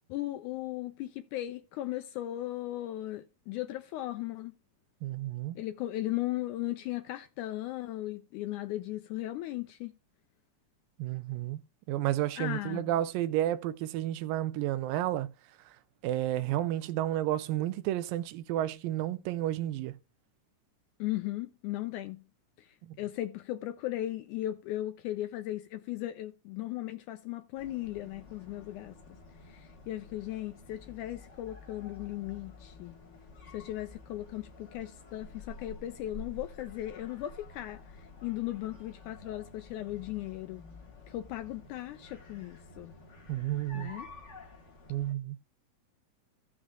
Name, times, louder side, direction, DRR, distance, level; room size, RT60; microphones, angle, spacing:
voice 1, 0.1-4.5 5.5-9.9 12.4-12.9 21.0-22.2 22.6-29.0 29.4-32.9 33.5-40.6 41.1-42.9 43.7-44.1, left 15 dB, 80° left, 1.8 m, -37 dB
voice 2, 5.0-5.6 11.0-11.6 11.9-15.3 16.0-19.9 22.9-23.0 43.3-43.9 44.9-45.4, right 13 dB, 85° right, 2.3 m, -31 dB
sound 1, 27.5-45.1, left 3 dB, 40° left, 1.0 m, -51 dB
16.5 x 6.2 x 2.3 m
omnidirectional pair, 4.0 m